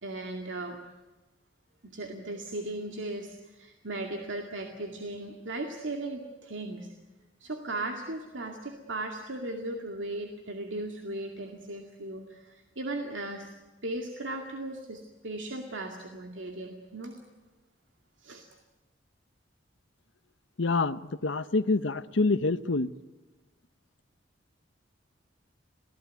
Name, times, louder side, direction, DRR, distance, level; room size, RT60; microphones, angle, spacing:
voice 1, 0.0-0.8 1.8-6.9 7.4-13.5 13.8-17.2 18.2-18.5, right 2 dB, 90° right, 3 dB, 2.3 m, -37 dB
voice 2, 20.6-22.9, left 3 dB, 85° left, 14 dB, 0.9 m, -27 dB
28.0 x 18.0 x 9.3 m, 1.2 s
head